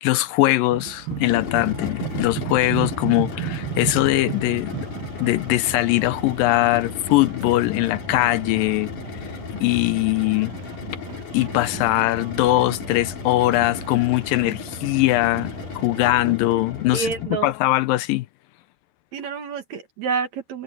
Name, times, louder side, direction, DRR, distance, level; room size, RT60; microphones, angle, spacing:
voice 1, 0.0-4.8 5.2-8.9 9.6-10.5 11.3-17.1 17.4-18.3, left 17 dB, 80° left, 2.3 m, -21 dB
sound 1, 0.7-16.3, right 18 dB, 85° right, 2.7 m, -36 dB
sound 2, 1.1-17.5, left 5 dB, 60° left, 4.2 m, -34 dB
voice 2, 16.9-17.5 19.1-20.6, right 6 dB, 60° right, 2.6 m, -28 dB
omnidirectional pair, 4.2 m